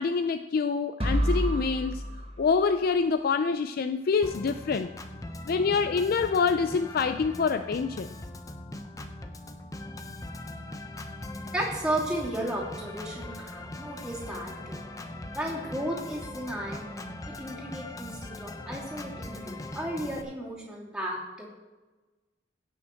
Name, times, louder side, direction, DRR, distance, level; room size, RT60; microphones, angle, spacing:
voice 1, 0.0-2.0 2.4-4.9 5.5-8.1, left 5 dB, 50° left, 10 dB, 0.4 m, -26 dB
sound 1, 1.0-3.0, equal, 30° right, 1.5 m, -29 dB
Organ, 4.2-20.2, left 1 dB, 20° left, 0.8 m, -40 dB
voice 2, 11.5-14.8 15.3-16.9 17.4-21.5, right 1 dB, 5° right, -5 dB, 2.7 m, -34 dB
17.0 x 6.3 x 4.4 m, 1.2 s
head